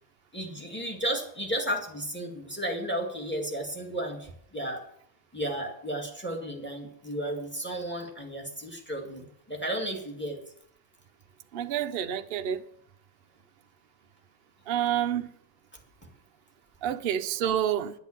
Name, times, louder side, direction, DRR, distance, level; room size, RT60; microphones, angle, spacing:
voice 1, 0.3-4.8 5.3-10.4 16.8-16.9, right 1 dB, 5° left, 2.1 m, -33 dB
voice 2, 11.5-12.6 14.7-15.3 16.8-17.9, right 10 dB, 85° right, 0.5 m, -28 dB
10.5 x 8.1 x 7.3 m
omnidirectional pair, 1.9 m